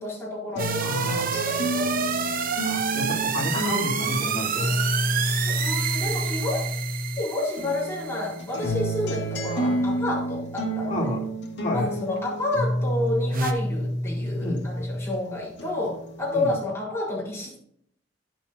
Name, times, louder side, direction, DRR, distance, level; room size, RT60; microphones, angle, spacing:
voice 1, 0.0-2.3 5.1-6.7 7.2-11.1 11.7-17.6, left 2 dB, 15° left, -6 dB, 4.1 m, -30 dB
sound 1, 0.5-7.2 7.6-15.2 15.6-16.5, equal, 65° left, 2.1 m, -29 dB
sound 2, 0.6-8.4 13.3-13.5, right 6 dB, 50° right, 0.7 m, -28 dB
voice 2, 0.8-1.3 2.6-4.8 10.9-11.2 11.6-11.9 14.4-14.6 16.3-16.6, left 1 dB, 35° left, -3 dB, 3.2 m, -30 dB
11.0 x 7.4 x 2.7 m, 0.65 s
head